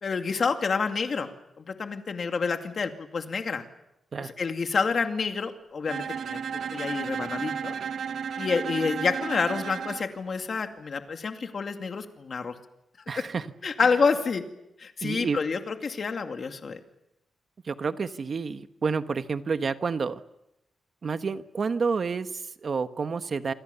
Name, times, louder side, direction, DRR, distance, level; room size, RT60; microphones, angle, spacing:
voice 1, 0.0-1.3 1.6-3.7 4.4-7.7 8.4-12.5 13.6-14.4 14.8-16.8, left 5 dB, 45° left, 5 dB, 2.4 m, -28 dB
Bowed string instrument, 5.9-10.1, right 7 dB, 70° right, 1.3 m, -33 dB
voice 2, 13.1-13.5 15.0-15.4 17.6-20.2 21.0-23.5, right 5 dB, 45° right, 10 dB, 1.3 m, -29 dB
28.5 x 24.5 x 7.0 m, 0.88 s
wide cardioid pair, 145°, 0 cm